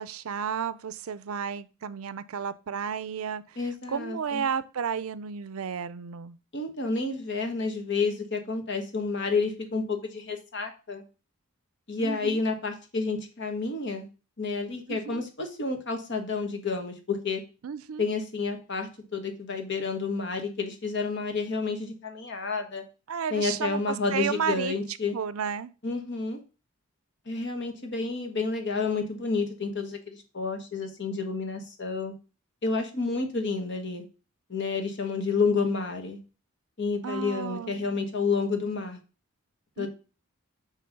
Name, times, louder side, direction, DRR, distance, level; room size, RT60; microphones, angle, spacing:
voice 1, 0.0-6.4 12.0-12.4 14.9-15.2 17.6-18.1 23.1-24.7 25.1-25.7 37.0-37.8 39.8-39.9, right 7 dB, 85° right, 0.5 m, -32 dB
voice 2, 3.6-4.4 6.5-11.0 11.9-14.1 14.4-17.4 18.0-22.8 23.3-25.2 25.8-26.4 27.3-32.1 32.6-34.0 34.5-36.2 36.8-39.0 39.8-39.9, left 4 dB, 55° left, 1.4 m, -30 dB
7.7 x 3.2 x 5.3 m
head